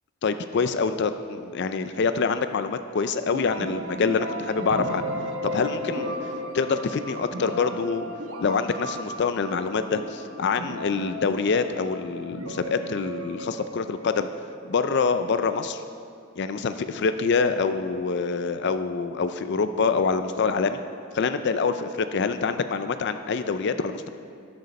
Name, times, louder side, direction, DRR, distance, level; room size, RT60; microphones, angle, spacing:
voice 1, 0.2-5.1 5.4-6.2 6.5-8.1 8.4-14.3 14.7-15.8 16.4-20.8 21.1-24.1, left 5 dB, 55° left, 10 dB, 0.4 m, -25 dB
sound 1, 3.3-15.0, equal, 75° right, 1.3 m, -35 dB
13.5 x 10.5 x 4.1 m, 2.4 s
head